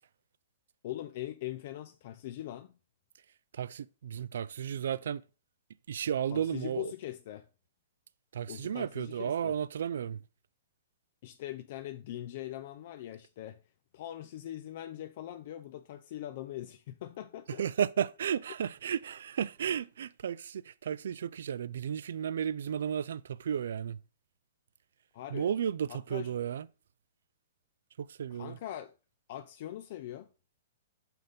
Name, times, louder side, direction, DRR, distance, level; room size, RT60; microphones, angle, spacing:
voice 1, 0.8-2.7 6.3-7.5 8.5-9.5 11.2-13.6 13.9-17.6 25.1-25.5 25.9-26.3 28.3-28.9 29.3-30.3, left 13 dB, 50° left, 0.4 m, -41 dB
voice 2, 3.5-5.2 5.9-6.9 8.3-10.2 17.5-24.0 25.3-26.7 28.0-28.6, right 8 dB, 75° right, 0.3 m, -33 dB
5.7 x 5.2 x 3.5 m
hypercardioid pair, 145°, 0 cm